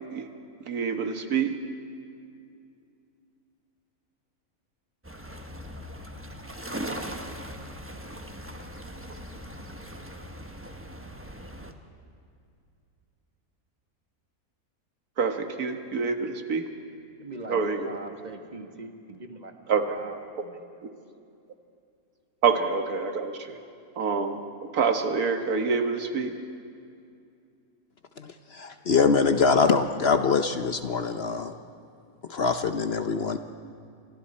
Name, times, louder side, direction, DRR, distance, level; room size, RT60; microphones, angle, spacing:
voice 1, 0.7-1.6 15.2-16.7 17.5-17.9 19.7-20.0 22.4-23.6 24.0-24.4 24.7-26.3, right 5 dB, 85° right, 6 dB, 1.9 m, -26 dB
sound 1, 5.0-11.7, equal, 10° right, 1.0 m, -39 dB
voice 2, 17.2-19.6 19.9-20.6, right 2 dB, 30° right, 5 dB, 1.5 m, -42 dB
voice 3, 28.2-31.5 32.3-33.4, left 5 dB, 50° left, 8 dB, 0.9 m, -24 dB
29.5 x 25.0 x 4.3 m, 2.4 s
omnidirectional pair, 1.5 m